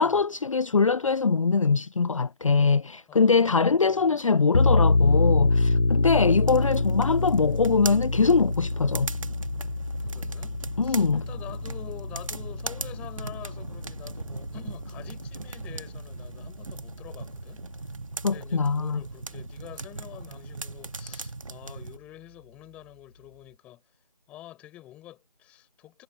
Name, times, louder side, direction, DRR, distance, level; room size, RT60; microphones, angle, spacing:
voice 1, 0.0-9.1 10.8-11.2 18.2-19.0, left 4 dB, 55° left, 0.5 m, -23 dB
voice 2, 3.1-4.2 6.3-6.9 10.0-17.7 18.2-23.8 24.3-26.0, left 14 dB, 5° left, 7.2 m, -47 dB
sound 1, 4.5-15.8, left 2 dB, 70° left, 4.7 m, -26 dB
sound 2, 6.5-22.0, right 3 dB, 55° right, 1.9 m, -39 dB
figure-of-eight pair, 170°, 20 cm